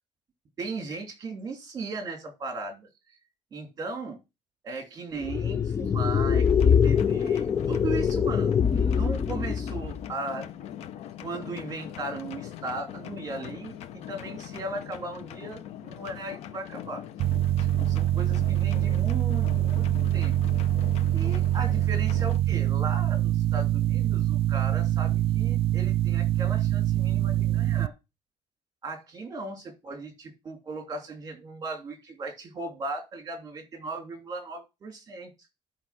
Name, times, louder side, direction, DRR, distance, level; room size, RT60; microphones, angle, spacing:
voice 1, 0.6-2.9 3.5-4.2 4.6-10.5 11.2-13.8 14.1-17.0 17.6-19.9 20.1-20.3 21.1-27.9 28.8-35.3, right 3 dB, 35° right, 4 dB, 2.9 m, -37 dB
sound 1, 5.2-10.1, left 7 dB, 25° left, 0.5 m, -24 dB
sound 2, 6.4-22.4, left 11 dB, 85° left, 0.8 m, -41 dB
sound 3, 17.2-27.9, right 13 dB, 65° right, 0.4 m, -24 dB
11.0 x 5.1 x 5.8 m, 0.26 s
cardioid pair, 160°, 11 cm